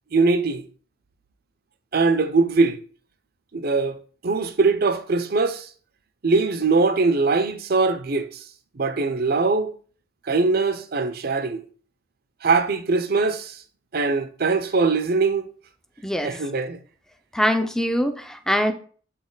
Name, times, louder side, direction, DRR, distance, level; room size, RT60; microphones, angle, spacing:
voice 1, 0.1-0.7 1.9-2.8 3.5-4.0 4.2-5.7 6.2-8.4 8.7-9.8 10.3-11.6 12.4-13.6 13.9-15.4 16.2-16.8, right 3 dB, 50° right, 0.6 m, -21 dB
voice 2, 16.0-16.3 17.3-18.7, equal, 5° left, 0.5 m, -23 dB
7.7 x 4.2 x 3.9 m
head